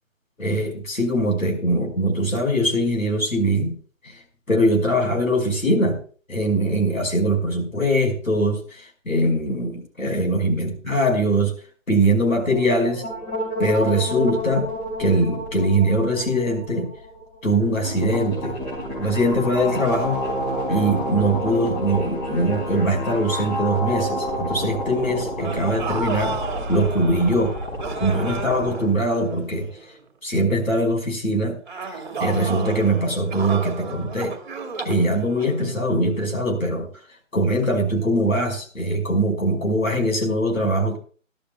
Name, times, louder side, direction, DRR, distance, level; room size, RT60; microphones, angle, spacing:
voice 1, 0.4-3.7 4.0-4.1 4.5-6.0 6.3-11.5 11.9-13.0 13.6-14.6 15.0-16.9 17.4-18.6 19.0-20.2 20.7-26.4 26.7-27.5 28.0-29.7 30.2-31.6 32.2-34.3 34.8-36.9 37.3-41.0, right 1 dB, 85° left, 3 dB, 5.0 m, -22 dB
sound 1, 12.3-28.8, equal, 20° left, 5.0 m, -29 dB
sound 2, 19.8-22.9 23.3-23.6 25.4-30.0 31.7-36.2, right 4 dB, 35° right, 1.9 m, -34 dB
21.5 x 11.5 x 2.3 m, 0.41 s
figure-of-eight pair, 155°, 40 cm